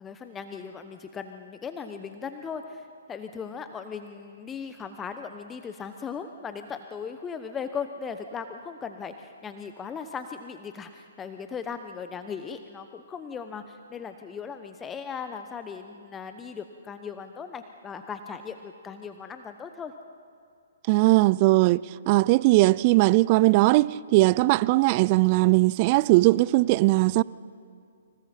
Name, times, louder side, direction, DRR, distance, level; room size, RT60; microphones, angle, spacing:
voice 1, 0.0-19.9, left 6 dB, 15° left, 1.0 m, -38 dB
voice 2, 20.9-27.2, right 20 dB, 35° right, 0.4 m, -20 dB
29.5 x 26.0 x 4.5 m
figure-of-eight pair, 125°, 0 cm